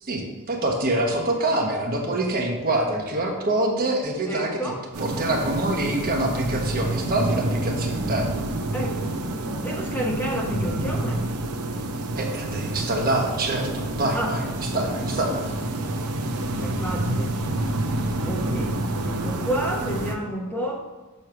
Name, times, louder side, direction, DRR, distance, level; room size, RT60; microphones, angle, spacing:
voice 1, 0.0-4.6 5.0-8.3 12.2-15.5, right 1 dB, 40° right, 1 dB, 0.9 m, -25 dB
voice 2, 4.3-4.8 8.7-9.2 9.6-11.3 14.1-14.3 14.7-14.9 15.8-15.9 16.6-17.5 18.2-20.8, right 1 dB, 10° left, -2 dB, 0.7 m, -30 dB
sound 1, 4.9-20.1, right 1 dB, 90° right, 0.7 m, -28 dB
6.6 x 3.1 x 5.8 m, 1.3 s
head